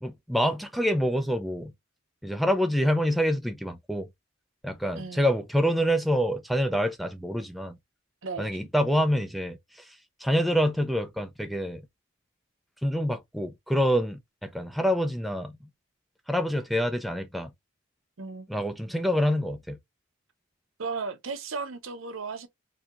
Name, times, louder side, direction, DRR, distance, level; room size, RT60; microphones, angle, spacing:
voice 1, 0.0-1.7 2.2-4.1 4.6-7.8 8.4-10.0 10.2-11.8 12.8-15.6 16.3-17.5 18.5-19.8, equal, ahead, 0.3 m, -26 dB
voice 2, 5.0-5.3 8.2-8.6 18.2-18.5 20.8-22.5, right 4 dB, 75° right, 0.8 m, -35 dB
4.2 x 2.8 x 2.4 m
head